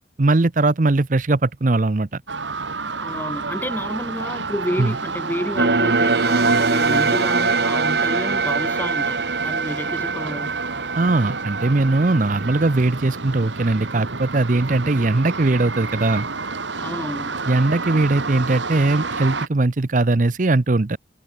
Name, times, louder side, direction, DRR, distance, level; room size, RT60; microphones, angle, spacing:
voice 1, 0.2-2.2 4.8-4.9 11.0-16.3 17.5-21.0, right 2 dB, 45° right, 0.7 m, -19 dB
sound 1, 2.3-19.5, right 4 dB, 85° right, 2.2 m, -30 dB
voice 2, 3.0-10.5 16.8-17.4, equal, 10° left, 3.2 m, -30 dB
sound 2, 5.6-12.8, right 4 dB, 60° right, 1.4 m, -22 dB
head